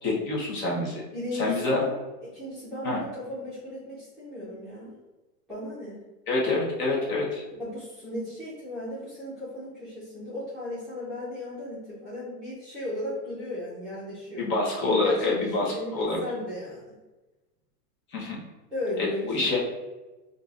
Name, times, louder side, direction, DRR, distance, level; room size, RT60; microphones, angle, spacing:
voice 1, 0.0-1.0 1.3-1.8 2.8-3.0 6.3-7.4 14.4-16.2 18.1-18.4 19.0-19.6, left 3 dB, 25° left, -3 dB, 1.0 m, -27 dB
voice 2, 1.1-1.9 2.2-5.0 5.5-6.0 7.6-14.4 14.8-16.8 18.7-19.5, left 1 dB, ahead, -12 dB, 1.0 m, -35 dB
5.2 x 2.7 x 2.5 m, 1.1 s
supercardioid pair, 145°, 47 cm